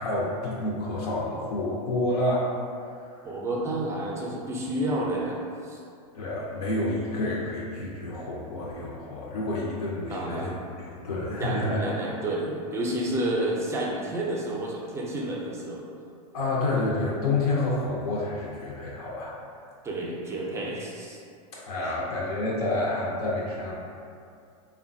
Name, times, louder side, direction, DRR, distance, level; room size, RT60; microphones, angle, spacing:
voice 1, 0.0-2.5 2.9-3.0 6.1-10.5 11.0-11.8 16.3-19.3 21.5-23.7, left 2 dB, 85° left, -5 dB, 0.5 m, -29 dB
voice 2, 3.2-5.8 10.1-10.5 11.4-15.8 19.8-21.2 21.8-22.0, right 1 dB, 15° right, -3 dB, 0.4 m, -30 dB
3.0 x 2.2 x 2.5 m, 2.3 s
supercardioid pair, 130°, 19 cm